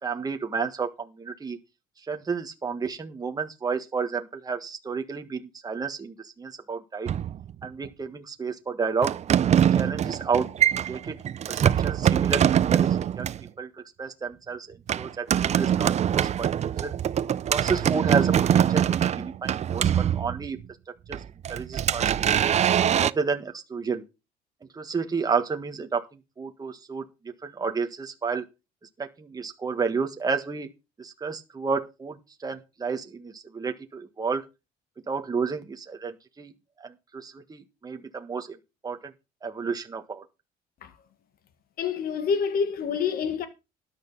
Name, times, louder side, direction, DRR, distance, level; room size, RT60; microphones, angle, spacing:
voice 1, 0.0-1.6 2.1-7.1 7.6-9.1 9.7-10.5 10.9-11.2 11.5-13.3 13.6-13.7 14.0-14.7 15.0-17.0 17.5-20.6 21.1-21.2 21.5-22.1 23.0-24.0 24.7-26.0 26.4-27.0 27.4-28.4 29.0-30.7 31.0-32.2 32.4-34.4 35.1-36.5 36.8-38.6 38.8-39.0 39.4-40.2, right 5 dB, 20° right, 1.5 m, -31 dB
sound 1, 7.1-7.9 9.0-13.5 14.9-20.7 21.1-23.1, right 9 dB, 40° right, 0.5 m, -23 dB
voice 2, 41.8-43.5, left 6 dB, 60° left, 1.7 m, -27 dB
13.0 x 10.0 x 4.1 m
cardioid pair, 110°, 17 cm